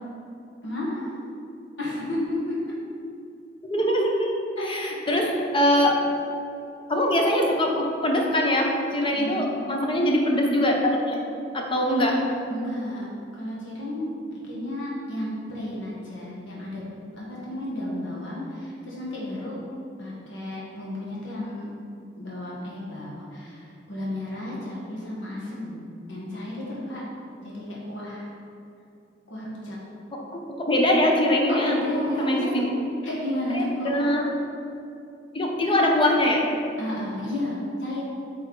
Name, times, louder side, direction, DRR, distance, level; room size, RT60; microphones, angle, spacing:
voice 1, 0.6-1.2 1.8-2.5 4.6-4.7 5.1-5.3 9.1-9.5 12.5-13.0 13.3-14.1 14.4-16.8 17.1-19.6 20.0-21.7 22.2-27.0 27.4-28.3 29.3-29.8 31.5-32.7 33.0-34.1 36.8-38.0, left 1 dB, 75° left, -6 dB, 1.4 m, -32 dB
voice 2, 3.7-4.3 4.6-5.3 5.5-6.0 6.9-11.2 11.5-12.3 30.1-31.8 32.2-32.7 33.5-34.2 35.3-36.5, left 1 dB, 25° left, 0 dB, 0.8 m, -23 dB
8.5 x 4.3 x 3.8 m, 2.6 s
head